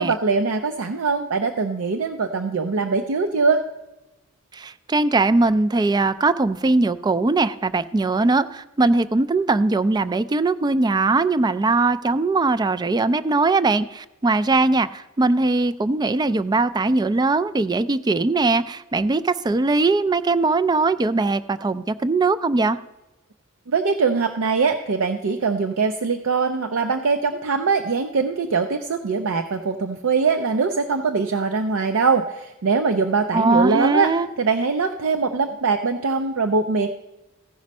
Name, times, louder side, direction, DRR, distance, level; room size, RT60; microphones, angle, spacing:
voice 1, 0.0-3.6 23.7-34.1 34.4-36.9, right 4 dB, 70° right, 6 dB, 0.5 m, -22 dB
voice 2, 4.5-22.8 33.3-34.3, right 3 dB, 20° right, 14 dB, 0.3 m, -20 dB
15.0 x 5.1 x 5.3 m, 1.0 s
head